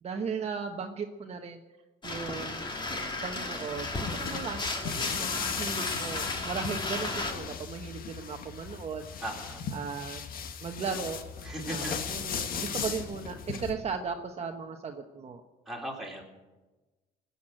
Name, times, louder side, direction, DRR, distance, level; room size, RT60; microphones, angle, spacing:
voice 1, 0.0-1.6 2.0-2.7 3.2-9.1 9.7-10.2 10.6-11.2 11.7-15.4, right 5 dB, 40° right, 3 dB, 1.1 m, -36 dB
sound 1, 2.0-7.3, left 2 dB, 25° left, 2.4 m, -34 dB
sound 2, 3.7-13.7, left 6 dB, 60° left, 1.6 m, -37 dB
voice 2, 4.1-4.4 9.2-9.6 11.4-12.0 15.7-16.2, right 1 dB, ahead, -2 dB, 4.0 m, -38 dB
19.5 x 8.3 x 8.9 m, 1.2 s
cardioid pair, 110°, 17 cm